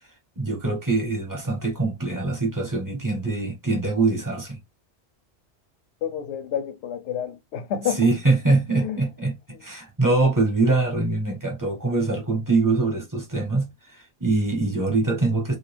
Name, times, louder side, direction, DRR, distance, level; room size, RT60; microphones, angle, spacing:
voice 1, 0.4-4.6 8.0-15.6, right 3 dB, 20° right, 0.7 m, -23 dB
voice 2, 6.0-8.1 8.7-9.1 9.5-9.6, left 9 dB, 85° left, 0.9 m, -29 dB
2.4 x 2.2 x 3.1 m
omnidirectional pair, 1.1 m